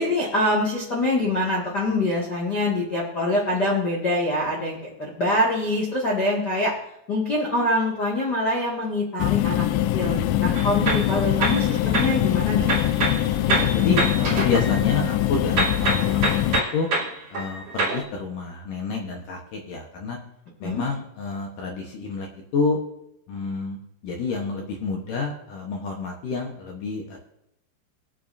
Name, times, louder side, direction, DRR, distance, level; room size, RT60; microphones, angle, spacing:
voice 1, 0.0-6.7 7.1-9.6 9.9-12.7 20.6-20.8, left 1 dB, 50° left, -5 dB, 1.2 m, -24 dB
sound 1, 9.2-16.6, left 13 dB, 85° left, 2.5 m, -23 dB
sound 2, 10.5-12.2 12.6-15.2 15.6-18.0, right 2 dB, 35° right, 3.5 m, -26 dB
voice 2, 13.5-16.4 16.7-16.9 17.3-20.2 20.6-22.3 22.5-22.8 23.3-23.8 24.0-27.2, left 4 dB, 70° left, 0 dB, 2.1 m, -28 dB
23.5 x 8.4 x 2.7 m, 0.81 s
omnidirectional pair, 5.4 m